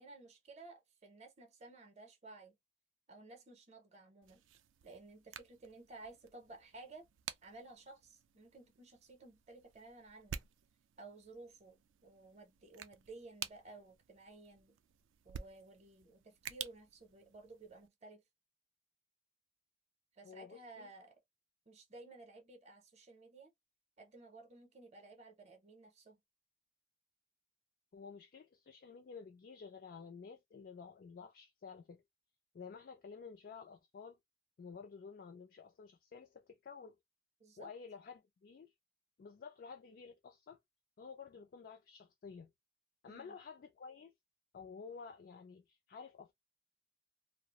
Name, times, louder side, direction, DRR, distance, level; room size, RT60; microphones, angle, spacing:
voice 1, 0.0-2.6 3.1-4.4 4.8-7.1 7.4-10.4 11.0-14.8 15.2-18.2 20.1-21.1 21.7-23.5 24.0-26.2 37.4-37.7 43.1-43.4, right 3 dB, 35° right, 0.6 m, -55 dB
sound 1, 4.2-17.9, right 9 dB, 70° right, 0.3 m, -52 dB
voice 2, 20.2-20.9 27.9-32.0 32.5-34.2 34.6-37.0 37.6-38.7 39.2-40.6 41.0-42.5 43.0-44.1 44.5-46.3, left 5 dB, 45° left, 0.3 m, -52 dB
2.3 x 2.0 x 2.8 m
head